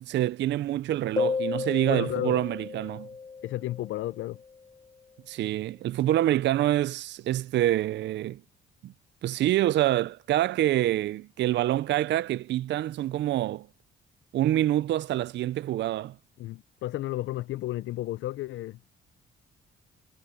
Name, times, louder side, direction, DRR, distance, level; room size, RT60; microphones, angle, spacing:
voice 1, 0.0-3.1 5.3-8.4 8.8-8.9 9.2-13.7 14.3-16.1, right 13 dB, 65° right, 0.5 m, -26 dB
sound 1, 1.2-4.5, left 5 dB, 20° left, 1.0 m, -33 dB
voice 2, 1.8-2.4 3.4-4.4 16.4-18.9, left 15 dB, 75° left, 0.5 m, -33 dB
cardioid pair, 90°, 20 cm